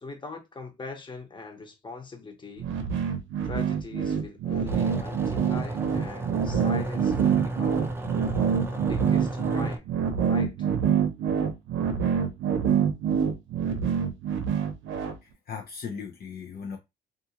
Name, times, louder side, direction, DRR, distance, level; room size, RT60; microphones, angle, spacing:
voice 1, 0.0-2.7 3.4-8.0 8.7-9.8 10.3-10.7, left 4 dB, 25° left, 1.0 m, -41 dB
sound 1, 2.6-15.1, right 7 dB, 75° right, 0.6 m, -26 dB
sound 2, 4.7-9.8, right 1 dB, 10° right, 0.5 m, -34 dB
voice 2, 15.2-16.8, left 6 dB, 50° left, 0.5 m, -38 dB
2.5 x 2.4 x 2.8 m
cardioid pair, 90°, 20 cm